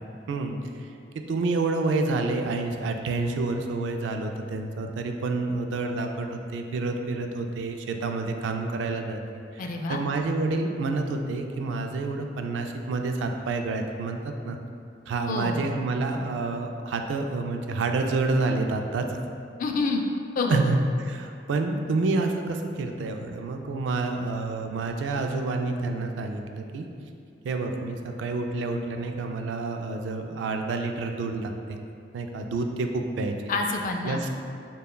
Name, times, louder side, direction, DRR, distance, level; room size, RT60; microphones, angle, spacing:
voice 1, 0.3-0.9 1.3-14.6 15.1-19.1 20.5-20.8 21.1-26.9 27.4-31.8 32.1-33.3 34.0-34.3, right 3 dB, 80° right, 5 dB, 0.3 m, -28 dB
voice 2, 9.6-10.0 15.3-15.7 19.6-20.0 20.4-20.7 33.5-34.2, left 3 dB, 45° left, 3 dB, 0.3 m, -27 dB
6.5 x 2.3 x 2.2 m, 2.4 s
head